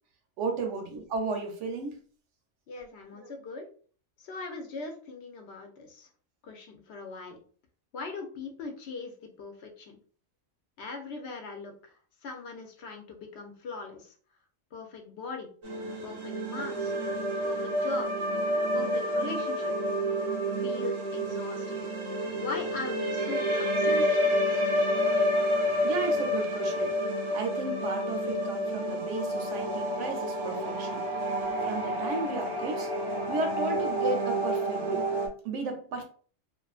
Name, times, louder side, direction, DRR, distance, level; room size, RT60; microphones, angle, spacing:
voice 1, 0.4-2.0 3.2-3.3 25.8-26.9 27.3-31.0 31.6-32.9 33.3-35.0 35.4-36.0, right 3 dB, 75° right, 0.9 m, -34 dB
voice 2, 2.7-3.7 4.2-6.1 6.4-7.4 7.9-9.1 9.4-10.0 10.8-12.0 12.2-14.1 14.7-15.5 16.0-16.9 17.4-18.1 18.7-19.7 20.4-21.9 22.3-24.2, left 3 dB, 65° left, 0.8 m, -40 dB
sound 1, 15.6-35.3, equal, 35° right, 0.5 m, -29 dB
2.4 x 2.4 x 2.3 m
omnidirectional pair, 1.3 m